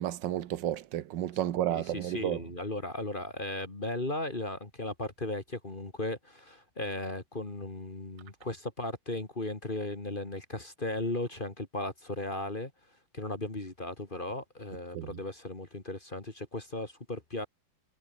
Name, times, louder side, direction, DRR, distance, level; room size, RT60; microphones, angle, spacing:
voice 1, 0.0-2.4 14.9-15.1, right 12 dB, 80° right, 1.5 m, -32 dB
voice 2, 1.7-12.7 13.1-17.5, left 2 dB, 25° left, 2.5 m, -36 dB
omnidirectional pair, 1.9 m